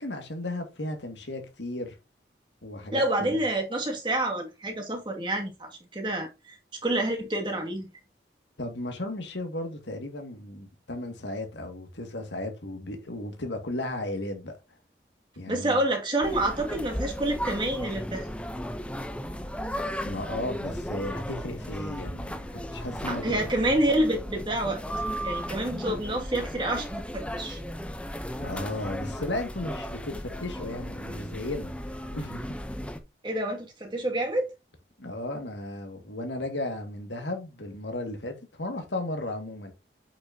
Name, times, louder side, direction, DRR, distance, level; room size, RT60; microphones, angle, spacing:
voice 1, 0.0-2.0 2.6-3.4 8.6-14.5 15.4-15.8 20.0-23.4 28.4-32.5 35.0-39.7, left 1 dB, 90° left, 2.2 m, -35 dB
voice 2, 2.9-6.6 6.8-7.9 15.5-18.3 23.1-24.8 25.2-27.6 33.2-34.5, right 1 dB, 25° right, 2.2 m, -28 dB
sound 1, 16.2-33.0, equal, 5° left, 0.7 m, -35 dB
8.3 x 6.1 x 2.8 m
head